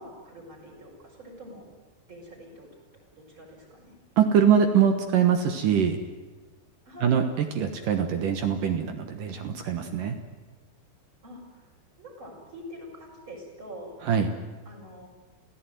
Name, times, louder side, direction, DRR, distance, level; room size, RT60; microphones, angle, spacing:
voice 1, 0.0-1.6 2.1-2.7 3.2-4.0 6.9-7.2 11.2-11.7 12.0-14.0 14.6-15.1, equal, 25° right, -1 dB, 6.4 m, -45 dB
voice 2, 4.2-6.0 7.0-10.2 14.1-14.3, right 7 dB, 65° right, 6 dB, 2.4 m, -23 dB
27.5 x 16.5 x 9.2 m, 1.2 s
omnidirectional pair, 5.0 m